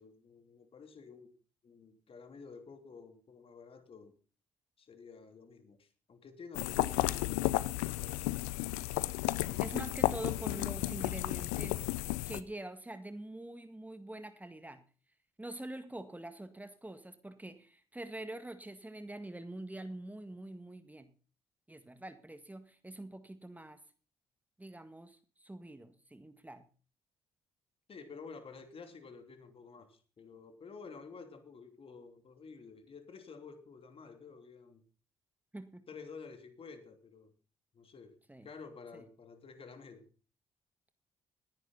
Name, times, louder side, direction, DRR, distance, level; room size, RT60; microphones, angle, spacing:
voice 1, 0.0-1.3 1.6-4.1 4.8-8.3 27.9-34.8 35.9-37.3 37.7-38.2 38.4-40.1, left 5 dB, 50° left, 8 dB, 3.1 m, -51 dB
sound 1, 6.5-12.4, left 18 dB, 80° left, 0.6 m, -33 dB
voice 2, 9.6-11.9 12.3-14.8 15.4-21.1 21.7-23.8 24.6-26.6 35.5-35.8 38.3-38.5 38.9-39.0, right 1 dB, 10° right, 9 dB, 1.9 m, -45 dB
19.5 x 10.5 x 4.0 m, 0.38 s
hypercardioid pair, 45°, 12 cm